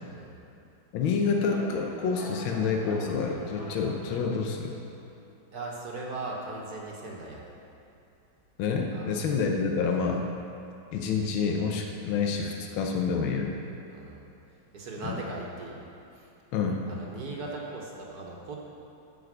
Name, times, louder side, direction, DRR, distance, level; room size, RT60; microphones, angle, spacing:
voice 1, 0.9-4.7 8.6-10.2 10.9-13.6 15.1-15.2 16.5-16.8, left 5 dB, 80° left, 2 dB, 1.6 m, -28 dB
sound 1, 1.4-4.9, left 1 dB, 40° left, 0.5 m, -43 dB
voice 2, 5.5-7.6 8.9-9.1 13.9-14.2 14.7-15.8 16.1-16.3 16.9-18.6, right 2 dB, 55° right, -2 dB, 1.7 m, -38 dB
12.0 x 5.2 x 7.7 m, 2.7 s
omnidirectional pair, 2.2 m